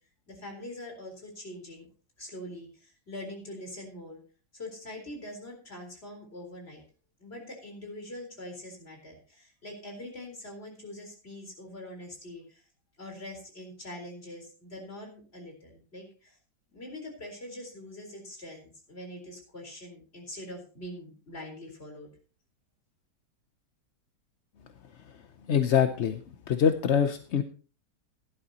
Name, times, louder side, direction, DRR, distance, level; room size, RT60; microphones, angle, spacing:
voice 1, 0.3-1.9 2.2-4.2 4.5-6.8 7.2-12.6 13.0-16.4 16.7-22.1, left 1 dB, 35° left, 3 dB, 4.3 m, -43 dB
voice 2, 25.5-26.2 26.5-27.4, left 8 dB, 55° left, 8 dB, 0.8 m, -24 dB
17.0 x 11.5 x 2.9 m, 0.36 s
omnidirectional pair, 1.8 m